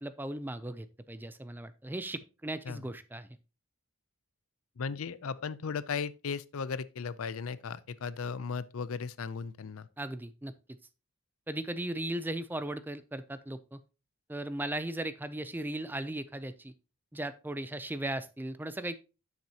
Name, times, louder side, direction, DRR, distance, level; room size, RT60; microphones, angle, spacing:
voice 1, 0.0-3.3 10.0-10.5 11.5-13.8 14.3-16.7 17.1-19.0, right 1 dB, 10° right, 0.4 m, -37 dB
voice 2, 4.8-9.9, left 5 dB, 70° left, 0.5 m, -36 dB
9.3 x 7.3 x 2.8 m
head